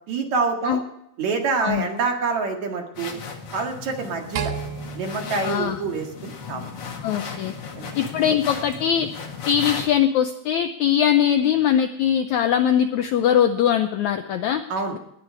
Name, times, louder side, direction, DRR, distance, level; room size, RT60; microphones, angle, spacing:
voice 1, 0.1-0.8 1.2-3.1 3.5-4.5 4.9-6.7 7.8-7.9 14.7-15.0, right 4 dB, 55° right, 3 dB, 2.9 m, -26 dB
sound 1, 2.9-9.8, left 5 dB, 45° left, 2.3 m, -36 dB
sound 2, 4.4-6.7, right 7 dB, 75° right, 2.9 m, -33 dB
voice 2, 5.4-5.8 7.0-7.5 8.0-9.1 9.5-14.6, left 9 dB, 85° left, 8 dB, 1.6 m, -21 dB
19.5 x 9.9 x 4.7 m, 0.79 s
omnidirectional pair, 4.2 m